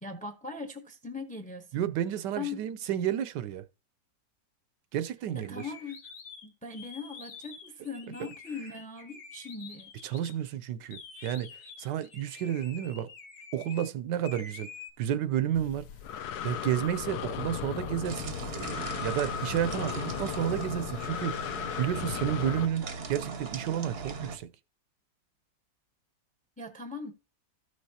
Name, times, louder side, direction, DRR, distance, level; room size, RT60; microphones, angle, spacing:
voice 1, 0.0-1.9 2.4-2.6 5.3-6.0 6.4-9.9 26.6-27.1, left 4 dB, 5° left, 0.7 m, -40 dB
voice 2, 1.7-3.6 4.9-5.6 10.0-11.5 11.8-13.1 13.5-14.7 15.0-15.8 16.4-24.5, right 10 dB, 75° right, 1.2 m, -31 dB
sound 1, 5.4-10.3 10.9-13.9 14.2-14.9, left 5 dB, 90° left, 2.0 m, -48 dB
Breathing, 15.5-22.7, left 9 dB, 70° left, 1.1 m, -36 dB
sound 2, 18.0-24.4, right 4 dB, 45° right, 0.8 m, -40 dB
13.5 x 6.3 x 2.8 m
omnidirectional pair, 1.9 m